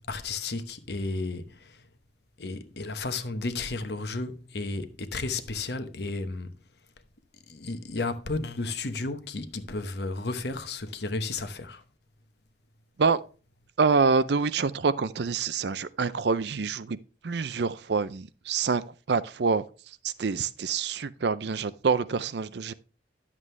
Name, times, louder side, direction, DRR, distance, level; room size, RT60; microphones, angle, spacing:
voice 1, 0.0-1.8 2.4-6.5 7.5-11.8, left 3 dB, 60° left, 1.0 m, -33 dB
voice 2, 13.8-17.0 17.2-18.8 19.1-19.6 20.0-22.7, right 5 dB, 60° right, 0.5 m, -26 dB
11.0 x 7.5 x 3.3 m
head